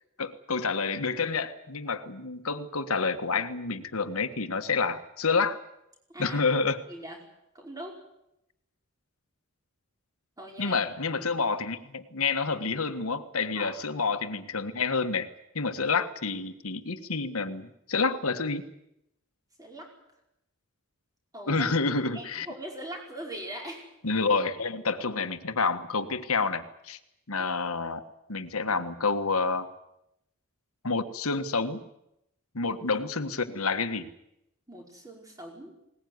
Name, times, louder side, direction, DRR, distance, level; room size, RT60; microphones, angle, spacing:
voice 1, 0.2-5.6 6.2-6.8 10.6-15.3 15.5-18.6 21.5-22.5 24.0-27.0 27.3-28.0 28.3-29.7 30.8-31.8 32.5-34.1, left 4 dB, 80° left, 9 dB, 1.5 m, -28 dB
voice 2, 6.1-6.5 6.9-7.2 7.5-8.0 10.4-10.9 13.5-13.7 19.6-19.9 21.3-21.7 22.1-23.9 27.4-27.5 32.6-32.7 34.7-35.7, right 1 dB, 15° right, 0 dB, 5.0 m, -41 dB
21.0 x 19.5 x 9.6 m, 0.84 s
head